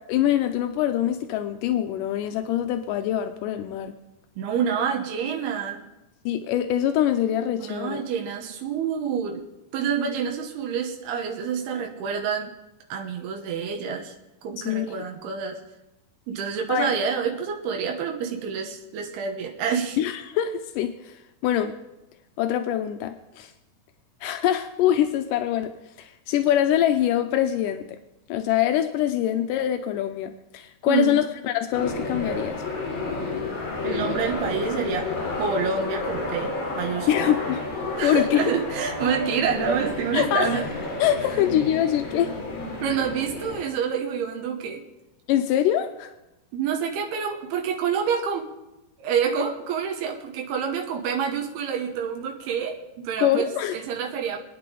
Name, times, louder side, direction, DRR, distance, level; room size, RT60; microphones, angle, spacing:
voice 1, 0.0-3.9 6.3-8.0 14.6-15.1 16.7-17.0 20.0-21.8 22.4-23.5 24.2-25.7 26.0-28.0 28.3-32.6 37.1-37.6 38.0-38.5 40.1-40.6 41.0-42.3 45.3-46.1 53.2-53.8, left 11 dB, 85° left, 8 dB, 1.9 m, -24 dB
voice 2, 4.4-5.8 7.6-9.5 9.7-12.5 12.9-14.2 14.4-15.6 16.3-20.0 30.9-31.2 33.8-35.1 35.4-37.4 38.0-40.7 42.8-44.8 46.5-48.5 49.0-54.4, right 6 dB, 90° right, 2 dB, 3.2 m, -27 dB
sound 1, 31.7-43.6, left 3 dB, 65° left, 5.1 m, -31 dB
27.5 x 9.5 x 3.9 m, 0.97 s
omnidirectional pair, 4.4 m